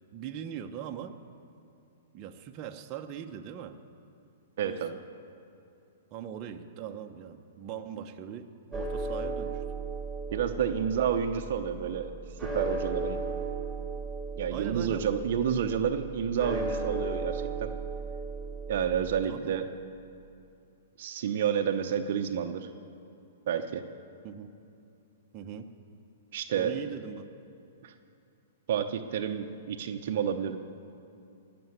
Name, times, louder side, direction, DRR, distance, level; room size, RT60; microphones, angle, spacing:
voice 1, 0.1-1.2 2.1-3.8 4.6-4.8 6.1-9.6 14.5-15.1 19.3-19.5 24.2-24.5 25.3-25.7 26.5-27.3, right 9 dB, 35° right, 4 dB, 1.0 m, -40 dB
voice 2, 4.6-5.0 10.3-12.1 12.4-13.2 14.4-17.7 18.7-19.7 21.0-22.7 23.5-23.8 26.3-26.8 27.8-27.9 28.7-30.6, right 8 dB, 60° right, 7 dB, 0.8 m, -30 dB
sound 1, 8.7-19.3, right 3 dB, 5° right, 4.5 m, -36 dB
19.0 x 7.0 x 9.7 m, 2.6 s
hypercardioid pair, 120°, 0 cm